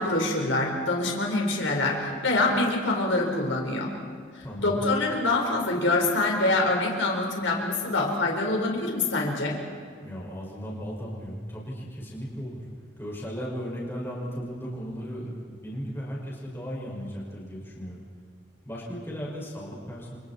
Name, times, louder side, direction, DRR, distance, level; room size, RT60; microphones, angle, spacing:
voice 1, 0.0-3.9 4.3-9.6, left 2 dB, 85° left, 0 dB, 4.4 m, -25 dB
voice 2, 4.4-4.8 10.0-12.6 13.0-18.0 18.6-20.1, equal, 10° left, -4 dB, 5.8 m, -36 dB
29.5 x 26.5 x 4.4 m, 2.1 s
head